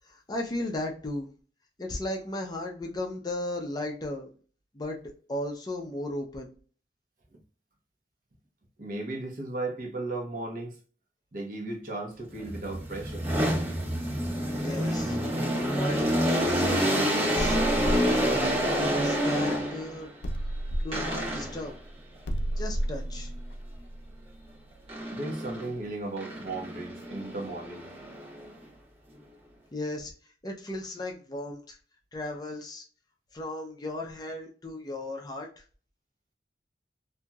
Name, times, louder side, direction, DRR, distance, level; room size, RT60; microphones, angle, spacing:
voice 1, 0.0-1.3 1.8-4.3 4.7-5.0 5.3-6.5 14.6-15.2 15.7-17.6 18.0-20.1 20.8-21.7 22.6-23.3 29.7-30.1 30.4-31.8 32.1-32.8 33.3-35.5, left 1 dB, 25° left, 0.5 m, -35 dB
voice 2, 8.8-10.8 11.3-13.3 25.1-27.9, right 2 dB, 50° right, 0.8 m, -35 dB
sound 1, 12.4-20.0 20.9-21.7 24.9-25.7 26.2-28.5, equal, 35° right, 1.2 m, -28 dB
sound 2, 17.4-19.7 20.2-24.9, right 1 dB, 80° left, 0.5 m, -33 dB
2.8 x 2.6 x 2.2 m
head